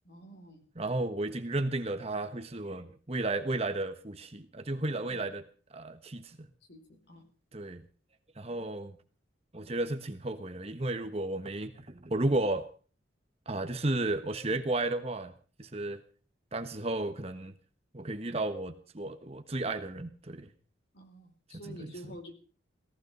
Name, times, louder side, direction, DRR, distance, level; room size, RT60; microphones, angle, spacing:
voice 1, 0.0-0.6 5.1-5.3 6.7-7.2 20.9-22.3, right 1 dB, 60° left, 5 dB, 4.3 m, -48 dB
voice 2, 0.8-5.4 5.7-6.4 7.5-7.8 8.4-9.0 9.5-12.6 13.5-15.3 15.6-16.0 16.5-17.5 17.9-20.5 21.6-21.9, right 2 dB, 30° right, 7 dB, 1.3 m, -33 dB
18.0 x 15.0 x 5.3 m, 0.40 s
head